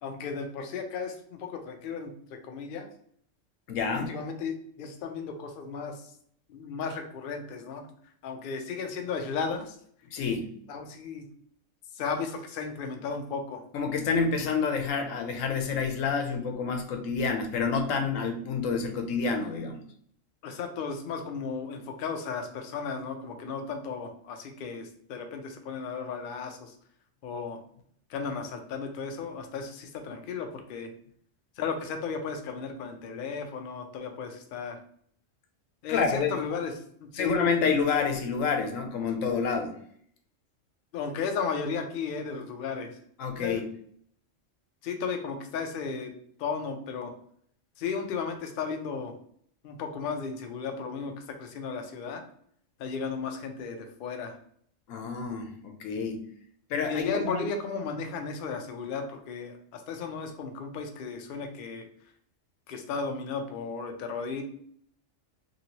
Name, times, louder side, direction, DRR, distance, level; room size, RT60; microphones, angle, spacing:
voice 1, 0.0-2.9 3.9-6.1 6.5-7.8 8.2-9.8 10.7-11.3 11.9-13.6 20.4-26.7 27.2-27.6 28.1-30.9 31.6-34.8 35.8-36.7 37.0-37.4 40.9-43.0 43.4-43.6 44.8-46.1 46.4-47.1 47.8-49.1 49.6-52.2 52.8-54.4 56.8-61.9 62.7-64.4, left 5 dB, 60° left, 5 dB, 0.5 m, -35 dB
voice 2, 3.7-4.1 10.1-10.5 13.7-19.8 35.9-36.4 37.2-39.8 43.2-43.6 54.9-56.2 56.7-57.5, left 5 dB, 85° left, 5 dB, 1.0 m, -28 dB
2.9 x 2.8 x 2.8 m, 0.63 s
omnidirectional pair, 1.3 m